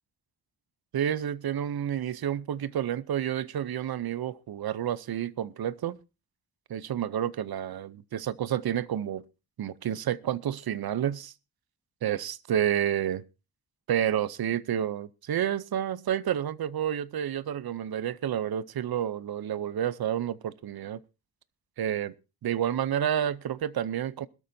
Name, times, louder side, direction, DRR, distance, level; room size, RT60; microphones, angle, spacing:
voice 1, 0.9-6.0 6.7-9.2 9.6-11.3 12.0-13.2 13.9-21.0 21.8-22.1 22.4-24.3, right 10 dB, 75° right, 0.7 m, -30 dB
21.0 x 13.0 x 2.7 m
wide cardioid pair, 165°, 37 cm